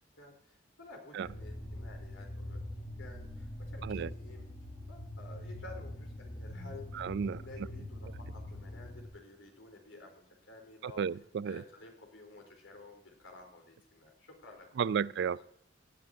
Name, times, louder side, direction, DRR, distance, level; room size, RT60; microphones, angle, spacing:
voice 1, 0.1-2.6 3.0-4.5 4.9-10.2 10.5-11.0 11.4-14.7 14.9-15.0 15.3-15.4, left 2 dB, 90° left, 3.7 m, -52 dB
sound 1, 1.2-9.1, left 1 dB, 55° left, 5.1 m, -43 dB
voice 2, 6.9-7.4 10.8-11.6 14.8-15.4, right 7 dB, 60° right, 0.3 m, -33 dB
18.0 x 9.9 x 2.7 m
head